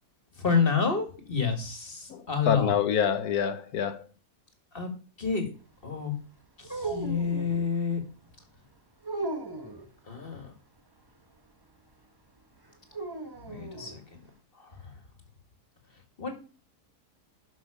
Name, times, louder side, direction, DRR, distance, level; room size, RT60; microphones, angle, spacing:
voice 1, 0.4-2.7 4.7-4.9 5.2-5.5 5.8-6.1 6.7-8.0 10.1-10.5 13.4-14.0 14.6-14.7 16.2-16.3, left 6 dB, 35° left, 2.1 m, -28 dB
voice 2, 2.1-4.0, left 8 dB, 70° left, 1.3 m, -27 dB
sound 1, 6.6-7.7 9.0-9.9 12.9-14.0, right 2 dB, 15° right, 1.0 m, -36 dB
12.0 x 6.1 x 4.9 m
omnidirectional pair, 1.8 m